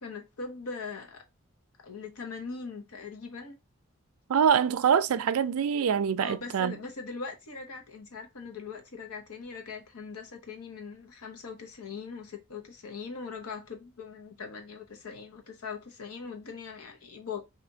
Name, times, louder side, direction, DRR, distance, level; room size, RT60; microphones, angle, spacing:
voice 1, 0.0-1.2 1.8-3.6 6.2-17.4, left 5 dB, 90° left, 0.9 m, -41 dB
voice 2, 4.3-6.8, right 7 dB, 80° right, 0.4 m, -24 dB
2.8 x 2.5 x 3.8 m
head